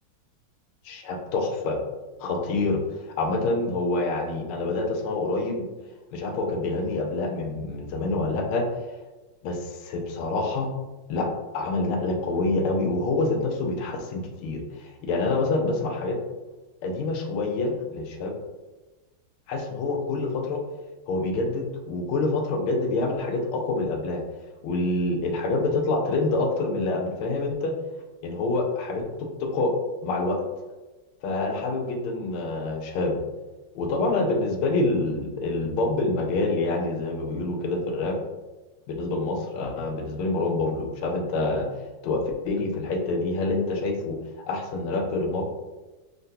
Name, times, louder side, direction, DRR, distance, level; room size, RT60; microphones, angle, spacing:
voice 1, 0.9-1.8 2.2-2.8 3.2-5.7 6.1-8.7 9.4-10.7 11.1-11.3 11.5-16.2 16.8-18.3 19.5-20.6 21.1-24.2 24.6-27.7 28.2-29.7 30.0-30.4 31.2-33.2 33.7-38.2 38.9-41.7 42.0-44.2 44.5-45.4, left 2 dB, 85° left, 3 dB, 1.4 m, -26 dB
3.7 x 2.2 x 2.7 m, 1.2 s
omnidirectional pair, 2.3 m